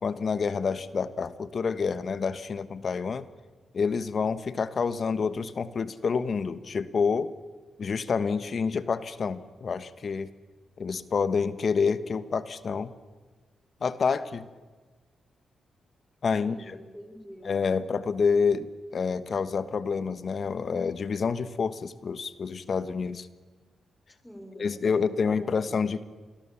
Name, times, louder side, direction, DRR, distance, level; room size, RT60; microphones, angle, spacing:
voice 1, 0.0-3.3 3.7-7.3 7.8-10.3 10.8-12.9 13.8-14.5 16.2-16.8 17.4-23.3 24.6-26.0, left 5 dB, 55° left, 14 dB, 1.2 m, -28 dB
voice 2, 16.4-17.5 24.2-25.7, equal, 5° left, 5 dB, 5.7 m, -46 dB
26.5 x 21.0 x 7.2 m, 1.4 s
supercardioid pair, 55°, 0 cm